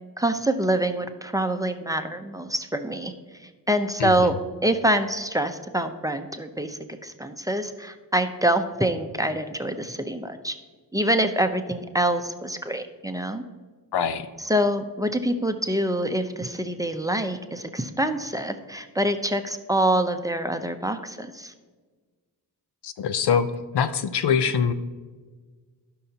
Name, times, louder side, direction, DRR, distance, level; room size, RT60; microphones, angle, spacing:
voice 1, 0.2-3.1 3.4-4.4 4.6-10.6 10.9-13.4 14.4-21.5, right 1 dB, 10° right, 7 dB, 0.7 m, -25 dB
voice 2, 4.0-4.3 13.9-14.3 22.8-23.5 23.7-24.7, left 7 dB, 70° left, 12 dB, 0.7 m, -23 dB
16.0 x 5.6 x 2.9 m, 1.4 s
cardioid pair, 70°, 42 cm